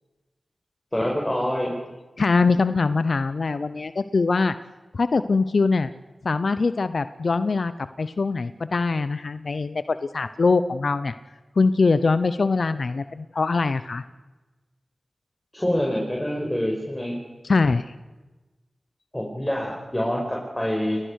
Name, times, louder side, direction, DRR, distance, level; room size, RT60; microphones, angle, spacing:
voice 1, 0.9-1.7 15.5-17.2 19.1-21.0, equal, 15° left, -2 dB, 5.4 m, -26 dB
voice 2, 2.2-4.5 4.9-5.9 6.2-11.1 11.6-14.0 17.4-17.9, left 4 dB, 70° left, 13 dB, 0.8 m, -22 dB
30.0 x 19.5 x 6.6 m, 1.2 s
cardioid pair, 50°, 0 cm